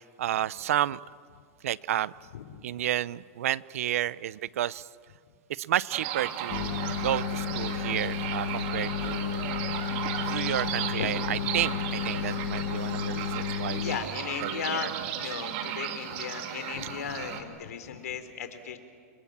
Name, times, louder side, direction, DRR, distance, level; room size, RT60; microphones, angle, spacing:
voice 1, 0.2-1.0 1.6-2.1 2.6-4.9 5.5-9.6 10.3-14.1 14.4-14.9, right 12 dB, 65° right, 19 dB, 0.7 m, -31 dB
sound 1, 5.9-17.4, right 10 dB, 40° right, 2.4 m, -35 dB
sound 2, 6.5-14.0, left 9 dB, 40° left, 1.8 m, -32 dB
voice 2, 11.0-11.3 13.7-18.8, left 7 dB, 80° left, 9 dB, 3.5 m, -36 dB
29.5 x 24.5 x 7.4 m, 2.2 s
supercardioid pair, 175°, 8 cm